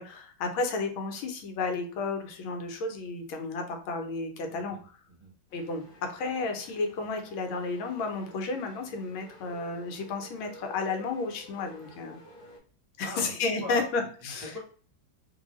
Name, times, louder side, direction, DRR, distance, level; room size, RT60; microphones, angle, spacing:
voice 1, 0.0-4.9 5.5-12.2 13.0-14.5, left 3 dB, 85° left, 4 dB, 1.6 m, -32 dB
voice 2, 4.5-5.3 13.0-13.9 14.2-14.6, left 1 dB, 30° right, -2 dB, 0.7 m, -42 dB
sound 1, 5.5-12.6, left 2 dB, 65° left, 0.5 m, -51 dB
3.2 x 2.6 x 3.0 m, 0.42 s
omnidirectional pair, 2.2 m